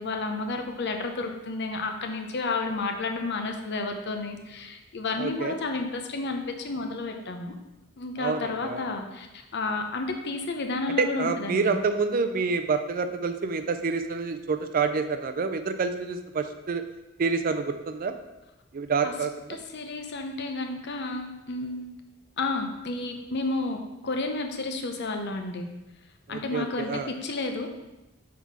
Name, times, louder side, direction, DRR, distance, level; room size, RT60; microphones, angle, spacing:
voice 1, 0.0-7.5 8.0-11.8 19.0-19.1 19.5-21.9 22.4-25.7 26.3-27.7, left 3 dB, 55° left, 5 dB, 0.7 m, -31 dB
voice 2, 5.2-5.6 8.2-8.8 11.0-16.8 17.2-18.1 18.7-19.6 26.3-27.1, right 4 dB, 45° right, 8 dB, 0.4 m, -28 dB
6.1 x 4.2 x 4.6 m, 1.0 s
head